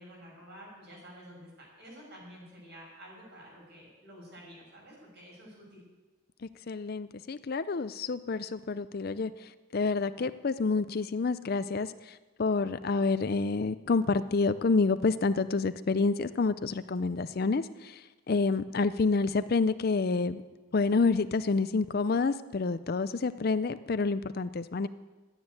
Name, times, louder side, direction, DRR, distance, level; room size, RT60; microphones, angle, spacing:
voice 1, 0.0-5.8 24.7-24.8, equal, 50° right, -2 dB, 6.7 m, -50 dB
voice 2, 6.4-20.4 20.7-24.9, left 4 dB, 45° left, 13 dB, 0.4 m, -28 dB
12.5 x 9.7 x 9.4 m, 1.2 s
head